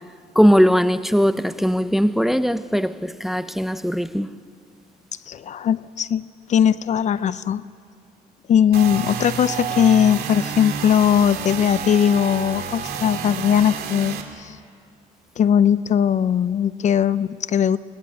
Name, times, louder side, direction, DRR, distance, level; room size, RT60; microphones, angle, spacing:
voice 1, 0.4-4.3, equal, ahead, 0.6 m, -19 dB
voice 2, 5.3-7.6 8.5-14.6 15.4-17.8, left 9 dB, 45° left, 0.6 m, -19 dB
sound 1, 8.7-14.2, right 7 dB, 65° right, 2.8 m, -30 dB
24.0 x 19.5 x 9.7 m
cardioid pair, 110°, 17 cm